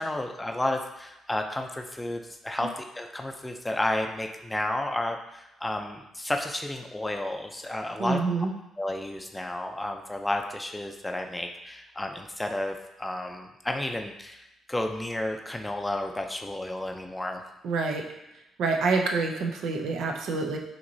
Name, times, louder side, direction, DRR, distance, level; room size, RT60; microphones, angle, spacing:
voice 1, 0.0-8.2 8.8-17.4, left 1 dB, 10° left, 4 dB, 0.5 m, -32 dB
voice 2, 8.0-8.5 17.6-18.0 18.6-20.6, right 4 dB, 75° right, 3 dB, 0.6 m, -27 dB
5.8 x 2.9 x 2.7 m, 0.89 s
cardioid pair, 90°, 0 cm